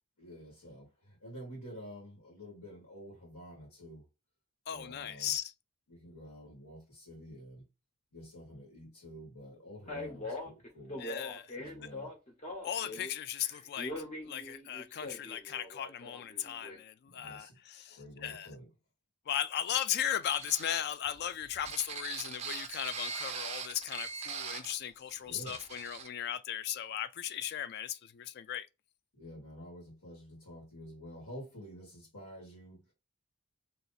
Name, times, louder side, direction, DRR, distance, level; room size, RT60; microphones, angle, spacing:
voice 1, 0.2-4.0 4.7-5.3 5.9-7.6 8.1-11.0 11.5-12.1 17.1-17.6 17.9-18.6 25.3-25.6 29.1-32.9, equal, 90° left, 1.9 m, -49 dB
voice 2, 4.7-5.5 11.0-11.6 12.6-18.5 19.3-28.7, left 10 dB, 45° left, 0.3 m, -37 dB
Male speech man speaking, 9.9-13.1 13.4-16.8, left 2 dB, 30° left, 0.9 m, -42 dB
sound 1, 20.2-24.8 25.1-25.2 25.5-26.1, right 6 dB, 30° right, 0.4 m, -41 dB
2.9 x 2.7 x 3.9 m
head